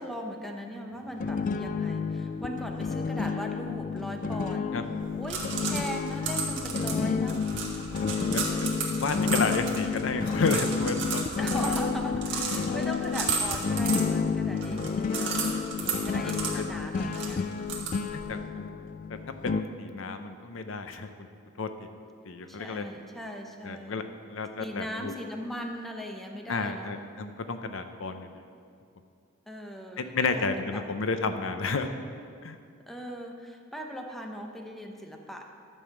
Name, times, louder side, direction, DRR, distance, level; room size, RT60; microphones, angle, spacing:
voice 1, 0.0-4.7 5.1-7.4 11.4-17.6 22.5-24.0 24.6-27.0 29.5-30.8 32.9-35.5, equal, ahead, 2 dB, 0.8 m, -39 dB
sound 1, 1.2-19.6, left 5 dB, 40° left, 0.3 m, -30 dB
sound 2, 5.0-18.3, right 5 dB, 60° right, 1.6 m, -35 dB
voice 2, 8.3-11.3 11.6-11.7 16.2-16.7 18.1-18.7 19.1-21.1 21.6-21.9 22.2-22.8 23.6-25.1 26.5-28.4 30.0-31.9 32.4-32.6, left 4 dB, 70° left, 8 dB, 0.6 m, -32 dB
11.5 x 5.5 x 7.2 m, 2.3 s
head